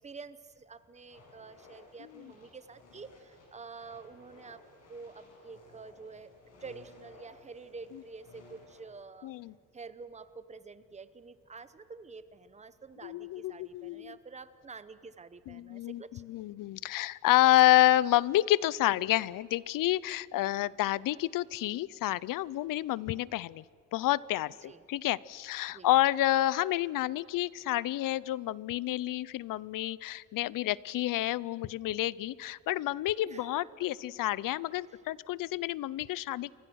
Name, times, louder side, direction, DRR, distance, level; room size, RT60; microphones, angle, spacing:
voice 1, 0.0-4.6 4.9-6.3 6.6-9.3 9.7-16.2 24.6-24.8 25.7-25.9 33.3-33.6 34.8-35.0, right 4 dB, 20° right, 14 dB, 0.8 m, -48 dB
sound 1, 1.1-8.8, left 2 dB, 45° left, 7.1 m, -57 dB
voice 2, 9.2-9.5 13.0-14.2 15.5-23.6 23.9-36.5, left 15 dB, 65° left, 22 dB, 0.6 m, -29 dB
29.5 x 24.5 x 6.3 m, 2.1 s
cardioid pair, 175°, 35 cm